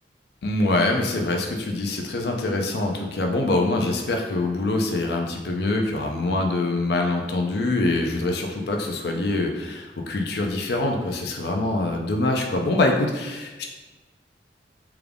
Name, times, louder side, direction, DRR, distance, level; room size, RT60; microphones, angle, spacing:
voice 1, 0.4-13.7, left 2 dB, 60° left, 2 dB, 0.4 m, -24 dB
3.5 x 2.3 x 3.4 m, 1.2 s
head